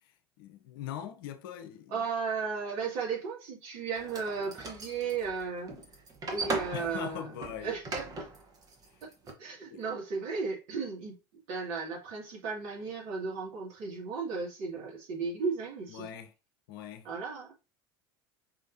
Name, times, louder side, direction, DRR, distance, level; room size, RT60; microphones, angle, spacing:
voice 1, 0.4-2.0 6.7-7.8 9.7-9.8 15.9-16.3 16.7-17.1, left 10 dB, 65° left, 0.7 m, -41 dB
voice 2, 1.9-5.7 6.3-7.3 7.6-8.3 9.4-16.1 17.0-17.5, right 5 dB, 55° right, 2.4 m, -35 dB
sound 1, 3.9-9.3, right 3 dB, 30° right, 1.4 m, -39 dB
5.5 x 3.2 x 2.8 m
figure-of-eight pair, 75°, 12 cm